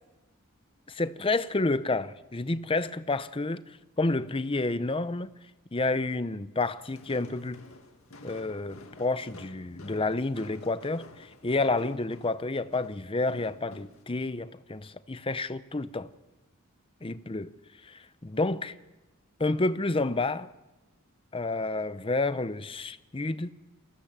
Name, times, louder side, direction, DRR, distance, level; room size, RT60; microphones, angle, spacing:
voice 1, 0.9-5.3 5.7-7.6 8.2-16.1 17.0-17.5 17.8-18.7 19.4-20.5 21.3-23.5, left 2 dB, 25° left, 0.7 m, -30 dB
Walk footsteps, 6.8-14.0, left 2 dB, 70° left, 2.1 m, -50 dB
28.0 x 15.5 x 7.3 m
head